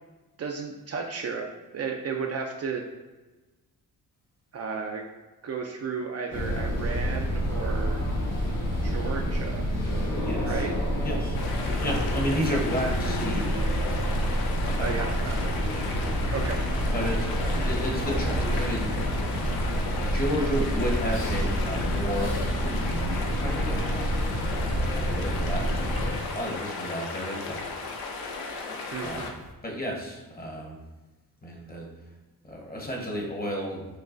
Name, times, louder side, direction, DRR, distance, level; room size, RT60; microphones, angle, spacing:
voice 1, 0.4-1.5 1.7-2.8 4.5-5.1 5.4-8.0 8.8-9.7 10.5-10.7 14.8-15.5 16.3-16.6 28.9-29.3, right 5 dB, 45° right, 2 dB, 0.4 m, -33 dB
sound 1, 6.3-26.2, equal, 60° left, 1.2 m, -28 dB
voice 2, 10.3-10.6 11.0-11.4 11.8-13.5 13.8-14.2 14.7-15.4 16.0-16.1 16.9-19.1 20.0-24.1 24.9-25.7 26.3-27.7 29.0-30.8 31.4-31.9 32.5-33.9, equal, 25° left, 0 dB, 1.0 m, -32 dB
sound 2, 11.3-29.5, left 3 dB, 85° left, 0.6 m, -36 dB
6.1 x 2.3 x 2.5 m, 1.2 s
cardioid pair, 85°, 36 cm